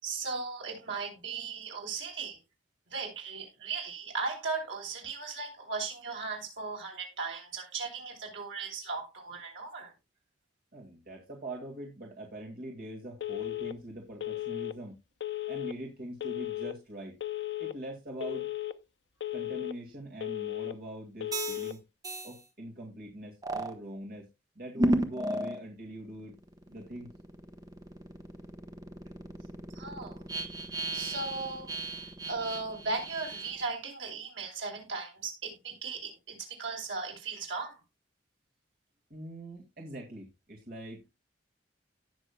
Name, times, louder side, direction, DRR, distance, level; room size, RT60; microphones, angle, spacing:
voice 1, 0.0-2.4 2.9-9.9 29.7-30.3 30.9-37.8, right 4 dB, 80° right, 1 dB, 4.0 m, -37 dB
voice 2, 10.7-15.0 15.5-17.1 17.6-18.5 19.3-21.8 22.2-24.3 24.6-26.3 26.7-27.1 39.1-41.1, right 1 dB, 50° right, -1 dB, 2.1 m, -43 dB
Telephone, 13.2-13.7 14.2-14.7 15.2-15.7 16.2-16.7 17.2-17.7 18.2-18.7 19.2-19.7 20.2-20.7 21.2-21.7, left 14 dB, 60° left, 0.6 m, -35 dB
sound 1, 21.3-21.7 22.0-22.3 23.4-23.7 24.8-25.6 26.1-33.7, right 1 dB, 20° right, 1.0 m, -34 dB
18.0 x 6.2 x 2.3 m, 0.22 s
head